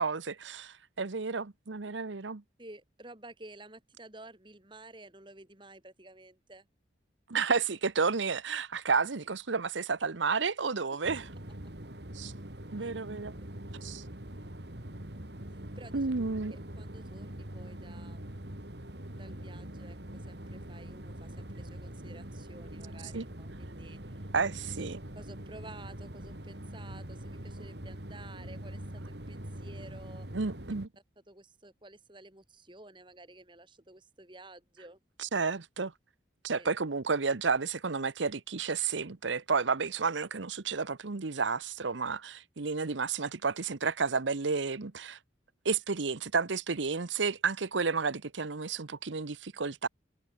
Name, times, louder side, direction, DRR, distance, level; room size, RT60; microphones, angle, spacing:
voice 1, 0.0-2.4 7.3-11.2 12.1-12.3 12.7-13.3 13.8-14.0 15.9-16.5 23.1-23.2 24.3-25.0 30.3-30.9 35.2-35.9 36.4-45.2 45.6-49.9, right 4 dB, 85° right, 1.0 m, -31 dB
voice 2, 2.6-6.7 12.8-12.9 15.8-16.0 16.5-18.5 19.1-24.3 24.8-24.9 25.1-30.3 30.7-30.8 31.3-35.0 36.5-36.7, right 2 dB, 25° right, 2.8 m, -52 dB
sound 1, 11.0-30.9, right 1 dB, 65° right, 3.4 m, -43 dB
head